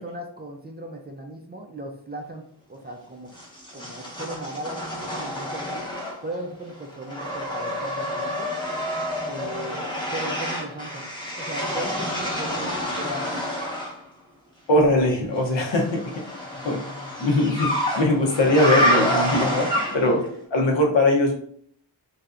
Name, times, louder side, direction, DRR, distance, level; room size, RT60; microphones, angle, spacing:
voice 1, 0.0-2.4 2.7-3.3 3.7-5.9 6.2-8.5 9.2-9.8 10.1-11.1 11.4-13.3 20.2-20.4, right 1 dB, 25° right, 2 dB, 0.3 m, -37 dB
sound 1, 3.3-6.4 6.7-14.0 15.5-20.2, left 1 dB, 10° left, 0.8 m, -28 dB
voice 2, 14.7-16.1 16.6-16.8 17.2-19.7 19.9-20.2 20.5-21.3, left 1 dB, 85° left, 0 dB, 0.9 m, -21 dB
3.3 x 2.7 x 2.4 m, 0.62 s
wide cardioid pair, 150°, 43 cm